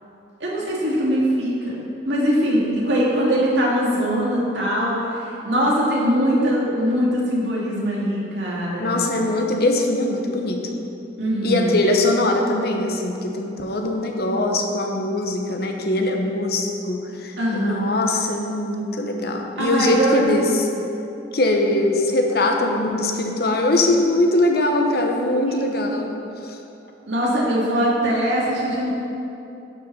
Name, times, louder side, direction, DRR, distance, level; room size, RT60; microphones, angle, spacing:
voice 1, 0.4-1.8 2.0-9.0 11.2-11.8 17.4-17.8 19.6-20.2 25.4-25.6 27.1-28.9, equal, 70° right, -5 dB, 2.3 m, -21 dB
voice 2, 8.8-10.6 11.4-20.7 21.3-26.1 26.4-26.6, left 2 dB, 55° left, 2 dB, 1.0 m, -21 dB
11.5 x 5.4 x 5.7 m, 2.8 s
head